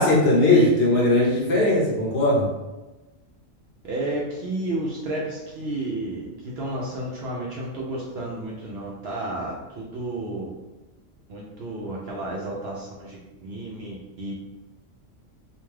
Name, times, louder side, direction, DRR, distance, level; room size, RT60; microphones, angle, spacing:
voice 1, 0.0-2.4, left 2 dB, 60° left, -5 dB, 0.9 m, -19 dB
voice 2, 3.8-10.5 11.3-14.3, right 1 dB, 65° right, -3 dB, 0.7 m, -32 dB
2.5 x 2.2 x 3.1 m, 1.1 s
omnidirectional pair, 1.4 m